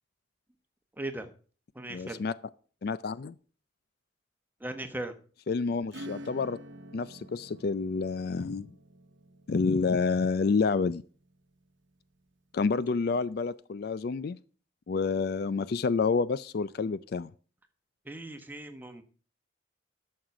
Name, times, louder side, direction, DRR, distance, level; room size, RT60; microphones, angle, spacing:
voice 1, 1.0-1.3 1.7-2.2 4.6-5.1 18.0-19.0, right 1 dB, 10° right, 1.1 m, -38 dB
voice 2, 1.9-2.3 2.8-3.3 5.5-6.6 6.9-8.7 9.5-11.0 12.5-14.4 14.9-17.3, left 4 dB, 55° left, 0.4 m, -28 dB
Acoustic guitar / Strum, 5.9-12.1, equal, 75° right, 1.0 m, -49 dB
11.5 x 6.6 x 5.9 m
head